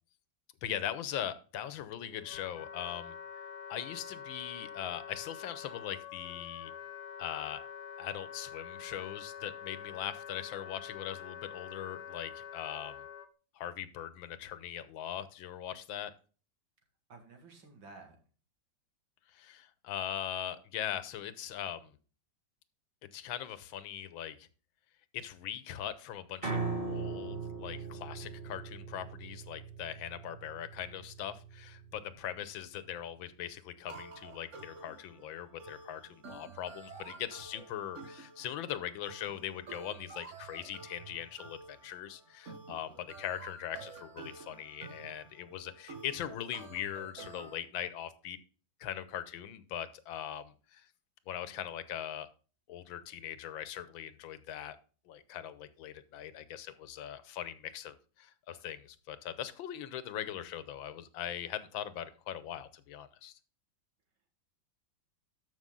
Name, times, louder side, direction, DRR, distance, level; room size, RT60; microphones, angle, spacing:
voice 1, 0.6-6.7 7.2-7.6 8.0-12.9 13.5-16.1 19.3-22.0 23.0-24.5 25.1-48.4 48.8-50.9 51.3-52.3 52.7-54.8 55.1-63.3, left 10 dB, 85° left, 14 dB, 1.6 m, -41 dB
Wind instrument woodwind instrument, 1.7-13.3, left 8 dB, 65° left, 1.3 m, -46 dB
voice 2, 17.1-18.2, right 3 dB, 80° right, 4 dB, 2.8 m, -53 dB
Piano, 26.4-32.6, right 4 dB, 30° right, 2.2 m, -40 dB
sound 1, 33.9-47.6, right 4 dB, 45° right, 1.2 m, -50 dB
13.0 x 5.7 x 3.8 m, 0.38 s
omnidirectional pair, 2.1 m